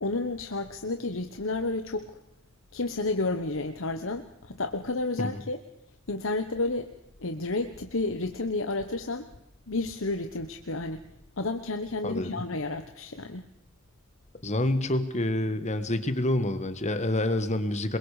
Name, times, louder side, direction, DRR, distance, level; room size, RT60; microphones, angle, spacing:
voice 1, 0.0-2.1 2.7-5.6 6.1-6.9 7.2-9.3 9.7-11.0 11.4-13.4, left 2 dB, 65° left, 7 dB, 1.3 m, -31 dB
voice 2, 12.0-12.4 14.4-18.0, left 1 dB, 35° left, 10 dB, 1.6 m, -27 dB
27.5 x 22.5 x 5.1 m, 0.82 s
head